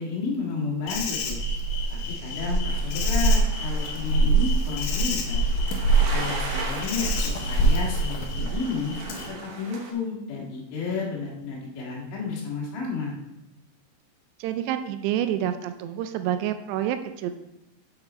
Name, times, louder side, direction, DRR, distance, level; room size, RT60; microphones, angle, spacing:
voice 1, 0.0-1.4 2.1-5.4 6.1-8.9 9.4-13.2, left 4 dB, 55° left, -4 dB, 2.7 m, -32 dB
Insect, 0.9-9.3, right 2 dB, 80° left, 1.8 m, -24 dB
sound 1, 2.7-9.9, right 3 dB, 65° right, 2.1 m, -39 dB
voice 2, 14.4-17.3, right 11 dB, 85° right, 9 dB, 2.6 m, -28 dB
7.9 x 5.9 x 4.2 m, 0.91 s
omnidirectional pair, 5.0 m